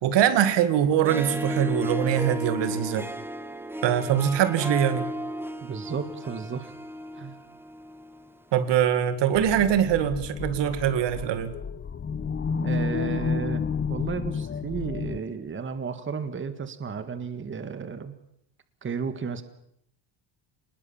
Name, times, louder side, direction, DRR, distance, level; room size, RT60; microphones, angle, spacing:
voice 1, 0.0-3.0 3.8-5.1 8.5-11.5, right 10 dB, 65° right, 11 dB, 2.2 m, -23 dB
Harp, 0.9-8.4, equal, 5° right, 1.1 m, -34 dB
voice 2, 5.6-6.7 7.2-7.4 12.6-13.6 13.9-18.1 18.8-19.4, right 6 dB, 25° right, 11 dB, 1.7 m, -33 dB
sound 1, 9.3-15.2, left 5 dB, 25° left, 1.1 m, -30 dB
25.0 x 20.5 x 7.3 m, 0.76 s
cardioid pair, 120°, 45 cm